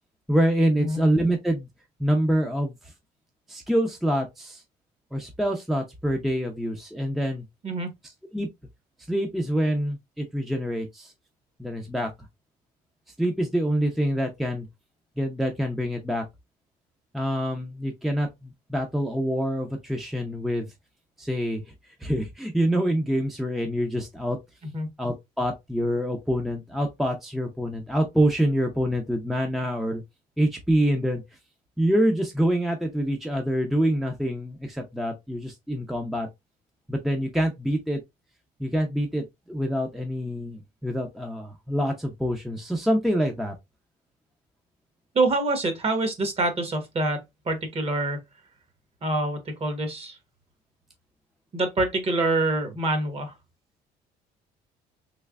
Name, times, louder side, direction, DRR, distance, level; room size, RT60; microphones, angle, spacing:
voice 1, 0.3-1.7 2.0-2.7 3.5-4.6 5.1-7.4 8.3-8.5 9.1-11.1 11.6-12.1 13.2-14.7 15.2-16.2 17.1-20.7 21.2-21.6 22.0-24.4 25.0-30.0 30.4-31.2 31.8-36.3 36.9-38.0 38.6-43.5, equal, ahead, 0.6 m, -26 dB
voice 2, 45.1-48.2 49.0-50.2 51.5-53.3, right 2 dB, 35° right, 1.1 m, -26 dB
3.3 x 3.1 x 2.3 m
cardioid pair, 110°, 17 cm